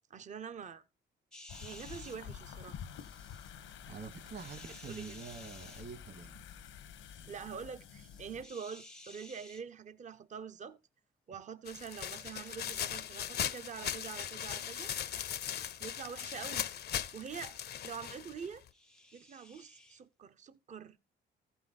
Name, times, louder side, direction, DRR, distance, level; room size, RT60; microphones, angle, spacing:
voice 1, 0.1-0.8 1.6-2.8 4.9-5.1 7.2-10.8 11.3-14.9 15.8-16.7 17.1-17.6 17.8-18.6 19.1-21.0, right 6 dB, 40° right, 0.6 m, -45 dB
sound 1, 1.3-2.2 2.8-3.6 4.4-5.9 7.7-9.6 18.7-20.0, left 2 dB, 5° left, 0.5 m, -55 dB
sound 2, 1.5-8.4, left 8 dB, 90° left, 1.1 m, -49 dB
voice 2, 3.9-6.4, right 5 dB, 55° right, 2.3 m, -46 dB
sound 3, 11.7-18.7, left 9 dB, 55° left, 0.6 m, -39 dB
14.0 x 5.6 x 4.0 m
cardioid pair, 90°, 20 cm